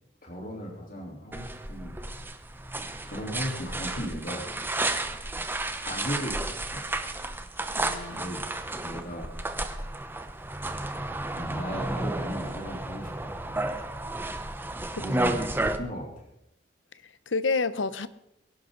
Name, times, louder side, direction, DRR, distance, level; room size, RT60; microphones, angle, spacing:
voice 1, 0.2-2.0 3.0-4.5 5.9-6.9 8.1-8.4 8.7-9.3 11.4-13.8 15.0-15.4 15.8-16.3, equal, 45° left, 3.5 m, -36 dB
sound 1, 1.3-15.8, right 2 dB, 10° right, 0.8 m, -32 dB
voice 2, 7.8-8.3 15.0-15.1 17.0-18.1, left 4 dB, 80° left, 0.8 m, -29 dB
22.5 x 11.5 x 3.9 m
head